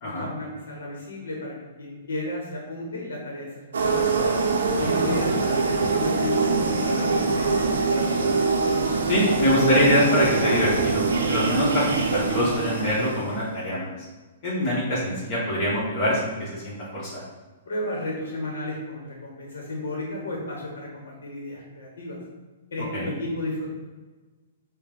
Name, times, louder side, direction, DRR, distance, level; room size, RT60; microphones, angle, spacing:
voice 1, 0.0-3.5 3.8-4.0 4.7-8.3 17.7-22.2 22.7-23.7, left 1 dB, 80° left, -2 dB, 0.9 m, -33 dB
sound 1, 3.7-13.5, right 4 dB, 85° right, 0.5 m, -24 dB
voice 2, 9.0-13.9 14.4-17.2 22.9-23.1, left 1 dB, 45° left, -7 dB, 1.1 m, -24 dB
4.5 x 2.2 x 3.3 m, 1.3 s
hypercardioid pair, 135°, 0 cm